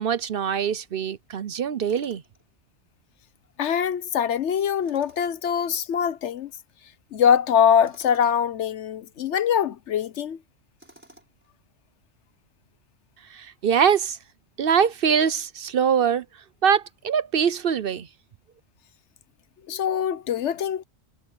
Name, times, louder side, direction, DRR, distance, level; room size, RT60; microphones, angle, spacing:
voice 1, 0.0-2.2 13.3-14.2 14.6-16.2 16.6-18.1, right 7 dB, 60° right, 0.8 m, -23 dB
Tools, 1.9-2.4 4.8-5.5 7.8-8.4 10.8-11.5, right 1 dB, 10° right, 5.2 m, -53 dB
voice 2, 3.6-6.5 7.1-10.4 19.7-20.8, left 8 dB, 75° left, 1.1 m, -23 dB
omnidirectional pair, 1.2 m